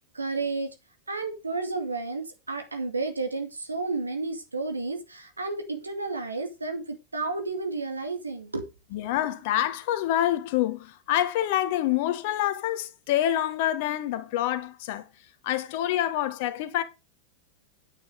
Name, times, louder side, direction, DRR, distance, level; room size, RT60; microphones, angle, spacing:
voice 1, 0.1-0.7 1.1-8.7 9.0-9.1, right 3 dB, 85° right, 2.4 m, -32 dB
voice 2, 8.9-15.0 15.4-16.8, left 12 dB, 55° left, 1.5 m, -26 dB
8.9 x 8.7 x 4.9 m
figure-of-eight pair, 90°, 0 cm